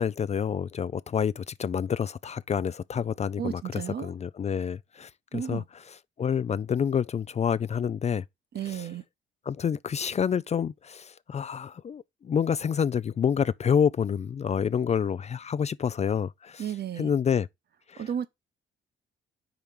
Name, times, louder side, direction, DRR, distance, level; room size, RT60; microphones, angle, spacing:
voice 1, 0.0-5.6 6.2-8.2 8.7-8.9 9.5-16.6 17.0-17.5 17.9-18.3, left 7 dB, 35° left, 0.4 m, -28 dB
voice 2, 3.4-4.1 5.3-5.6 8.5-9.0 16.6-17.1 18.0-18.3, right 9 dB, 55° right, 0.9 m, -33 dB
5.0 x 4.5 x 5.3 m
cardioid pair, 90°, 20 cm